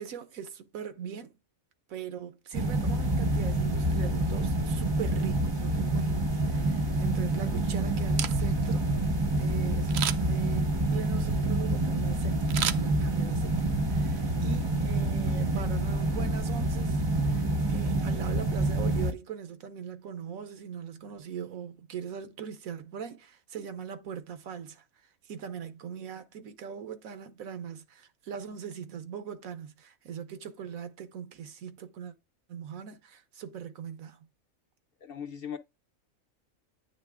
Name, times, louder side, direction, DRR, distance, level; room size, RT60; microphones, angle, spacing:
voice 1, 0.0-1.4 1.9-32.1 32.5-34.3, right 8 dB, 90° right, 1.3 m, -41 dB
sound 1, 2.5-19.1, right 1 dB, 30° right, 0.5 m, -27 dB
Camera, 8.0-8.7 9.9-10.4 12.5-13.4 13.8-13.9, right 9 dB, 65° right, 0.7 m, -32 dB
voice 2, 35.0-35.6, left 8 dB, 60° left, 0.6 m, -38 dB
9.1 x 3.3 x 3.6 m
omnidirectional pair, 1.4 m